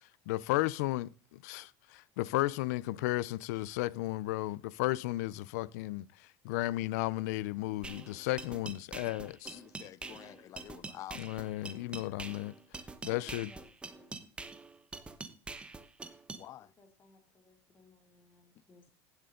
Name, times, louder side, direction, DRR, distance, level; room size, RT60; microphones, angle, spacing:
voice 1, 0.3-9.6 11.2-12.5 13.0-13.5, left 17 dB, 90° left, 0.6 m, -34 dB
sound 1, 7.8-16.4, right 3 dB, 10° right, 1.0 m, -45 dB
voice 2, 9.5-11.4 16.3-16.7, left 12 dB, 40° left, 0.6 m, -49 dB
voice 3, 13.0-14.1 16.6-18.9, left 4 dB, 25° left, 2.8 m, -61 dB
16.5 x 8.1 x 3.8 m
cardioid pair, 140°, 9 cm